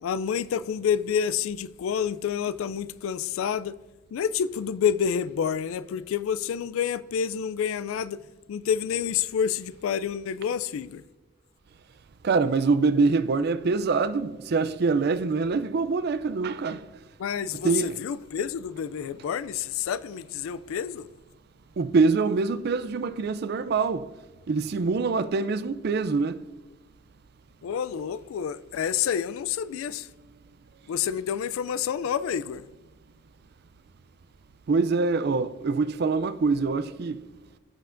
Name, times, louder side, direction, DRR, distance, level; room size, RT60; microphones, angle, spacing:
voice 1, 0.0-3.8 4.1-8.2 8.5-11.0 17.2-21.1 27.6-30.1 30.9-32.6, left 8 dB, 80° left, 0.3 m, -28 dB
voice 2, 12.2-16.8 17.6-17.9 21.8-24.1 24.5-26.4 34.7-37.2, right 4 dB, 50° right, 0.4 m, -24 dB
15.0 x 5.6 x 2.5 m
head